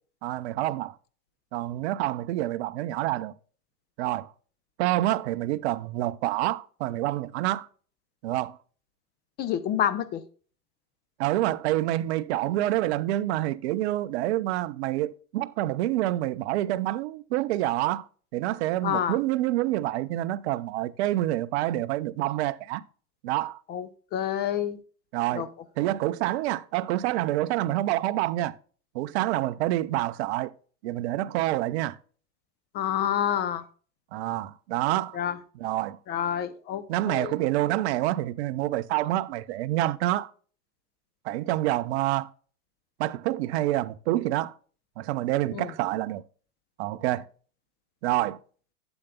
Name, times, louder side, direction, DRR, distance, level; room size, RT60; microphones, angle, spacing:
voice 1, 0.2-0.9 1.5-3.3 4.0-4.3 4.8-7.7 8.2-8.6 11.2-18.0 18.3-22.8 23.2-23.6 25.1-25.5 25.8-28.5 28.9-30.5 30.8-32.0 34.1-35.2 35.6-36.0 36.9-40.3 41.2-42.3 43.0-44.5 45.0-46.2 46.8-47.2 48.0-48.4, right 15 dB, 45° right, 0.6 m, -27 dB
voice 2, 9.4-10.2 18.8-19.2 23.7-24.8 25.3-25.5 32.7-33.6 35.1-35.4 36.1-37.3 45.5-45.7, left 10 dB, 20° left, 0.6 m, -28 dB
11.5 x 8.0 x 2.3 m
hypercardioid pair, 105°, 46 cm